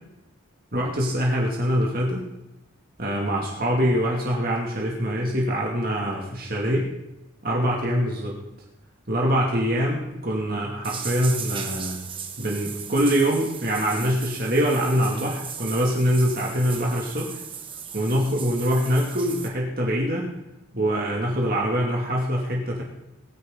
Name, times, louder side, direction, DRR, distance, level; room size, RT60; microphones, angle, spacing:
voice 1, 0.7-2.2 3.0-6.9 7.4-8.4 9.1-12.0 12.4-17.4 17.9-20.3 20.7-22.8, equal, 45° right, -2 dB, 2.6 m, -24 dB
sound 1, 10.8-19.5, right 7 dB, 25° right, 1.4 m, -36 dB
21.5 x 10.0 x 4.0 m, 0.93 s
head